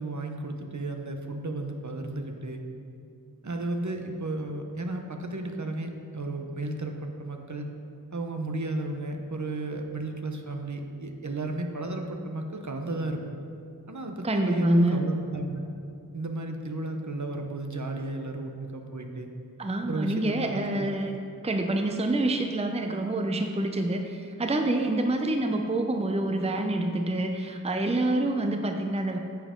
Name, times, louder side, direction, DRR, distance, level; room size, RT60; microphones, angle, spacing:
voice 1, 0.0-2.6 3.4-7.7 8.1-13.2 13.9-15.6 16.1-19.3 19.9-20.9, right 2 dB, 55° right, 4 dB, 0.9 m, -34 dB
voice 2, 14.2-15.0 19.6-21.1 21.4-29.2, right 1 dB, 20° right, 4 dB, 0.6 m, -26 dB
10.5 x 7.2 x 3.7 m, 2.5 s
wide cardioid pair, 50°, 36 cm